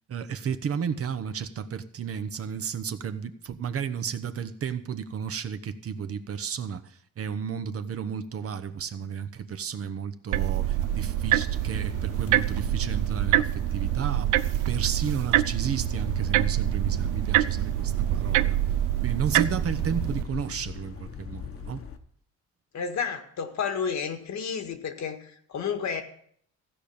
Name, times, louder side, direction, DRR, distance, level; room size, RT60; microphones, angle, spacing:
voice 1, 0.1-14.3 14.7-18.6 19.0-21.8, right 7 dB, 50° right, 1.0 m, -33 dB
sound 1, 10.3-20.2, right 14 dB, 90° right, 0.5 m, -26 dB
sound 2, 10.6-22.0, left 7 dB, 45° left, 1.3 m, -40 dB
voice 2, 22.7-26.0, left 6 dB, 65° left, 1.9 m, -31 dB
15.5 x 5.2 x 8.6 m
cardioid pair, 90°, 30 cm